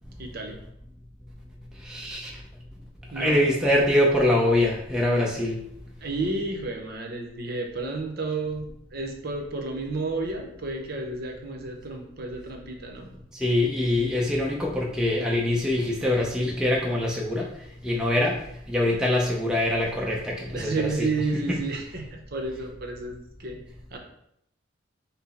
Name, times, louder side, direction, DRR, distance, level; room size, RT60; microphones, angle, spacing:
voice 1, 0.2-0.6 3.1-3.4 6.0-8.7 8.9-13.1 20.5-23.6 23.9-24.0, right 3 dB, 50° right, 2 dB, 0.8 m, -31 dB
voice 2, 1.8-2.3 3.2-5.6 13.3-17.5 17.8-18.4 18.7-21.1, left 1 dB, 5° right, -3 dB, 0.5 m, -24 dB
5.9 x 2.0 x 4.1 m, 0.76 s
head